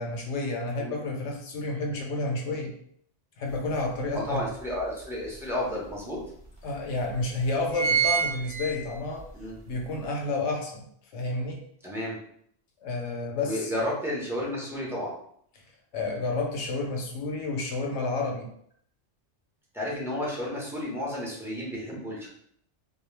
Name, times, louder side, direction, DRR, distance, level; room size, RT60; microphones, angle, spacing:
voice 1, 0.0-2.7 3.4-4.4 6.6-9.3 9.6-10.9 11.1-11.6 12.8-13.7 15.9-18.5, left 2 dB, 75° left, 1 dB, 0.9 m, -30 dB
sound 1, 3.5-3.6 4.1-5.2 5.9-6.0 6.2-6.3 7.0-7.2 7.5-9.3 9.7-9.8, right 6 dB, 50° right, 0.8 m, -27 dB
voice 2, 4.1-6.2 9.3-9.6 11.8-12.2 13.4-15.1 19.7-22.3, left 1 dB, 5° right, -5 dB, 0.5 m, -32 dB
2.2 x 2.1 x 3.1 m, 0.66 s
omnidirectional pair, 1.2 m